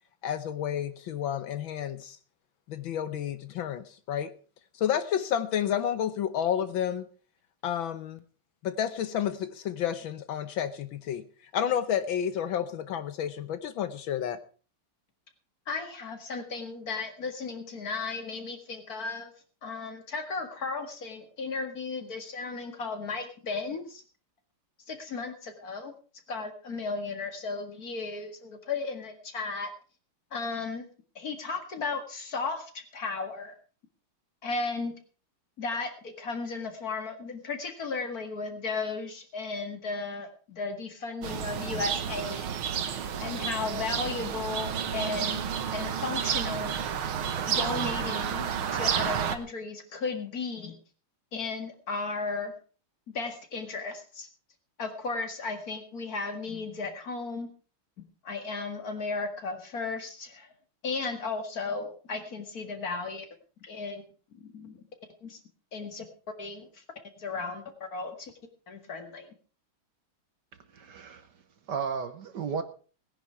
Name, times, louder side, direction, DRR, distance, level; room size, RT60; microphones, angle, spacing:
voice 1, 0.2-2.2 2.7-4.3 4.7-7.1 7.6-8.2 8.6-11.2 11.5-14.4, left 9 dB, 70° left, 1.5 m, -30 dB
voice 2, 15.7-19.3 19.6-24.0 24.9-25.9 26.3-29.7 30.3-30.9 31.2-33.5 34.4-34.9 35.6-42.5 43.2-45.4 45.7-46.8 47.3-50.8 51.3-52.5 53.1-54.3 54.8-57.5 58.2-60.5 60.8-63.3 63.6-64.0 64.4-64.8 65.2-65.4 65.7-66.1 66.4-66.8 67.2-67.6 67.9-68.3 68.7-69.3, left 4 dB, 45° left, 2.3 m, -35 dB
sound 1, 41.2-49.4, right 8 dB, 75° right, 1.9 m, -31 dB
voice 3, 70.7-71.3 71.7-72.6, right 6 dB, 55° right, 1.5 m, -33 dB
17.5 x 10.5 x 4.7 m
omnidirectional pair, 2.4 m